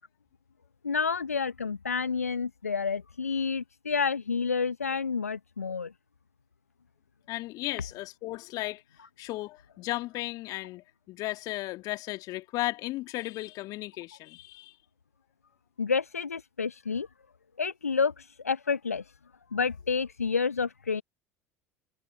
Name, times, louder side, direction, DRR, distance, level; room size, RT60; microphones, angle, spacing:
voice 1, 0.8-5.9 15.8-17.1 17.6-19.0 19.5-21.0, left 5 dB, 85° left, 0.9 m, -29 dB
voice 2, 7.3-8.8 9.2-14.8, left 18 dB, 50° left, 1.9 m, -35 dB
figure-of-eight pair, 65°, 8 cm